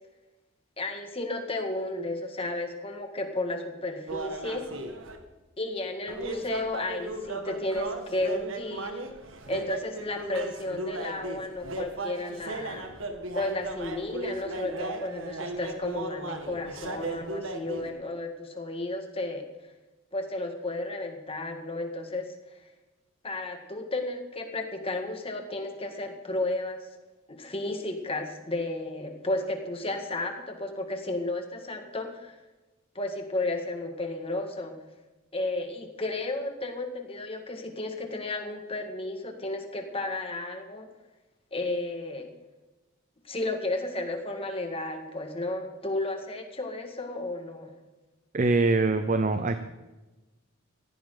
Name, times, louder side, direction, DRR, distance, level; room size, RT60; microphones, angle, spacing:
voice 1, 0.8-4.6 5.6-9.0 9.5-12.9 13.3-19.5 20.1-22.3 23.2-26.9 27.3-32.3 33.0-34.7 35.3-40.9 41.5-42.3 43.3-47.7, left 2 dB, 25° left, 4 dB, 1.9 m, -33 dB
sound 1, 4.1-5.2 6.1-17.9, right 2 dB, 75° right, 1.9 m, -36 dB
voice 2, 48.3-49.6, right 3 dB, 40° right, 9 dB, 0.7 m, -23 dB
18.0 x 14.5 x 3.9 m, 1.1 s
head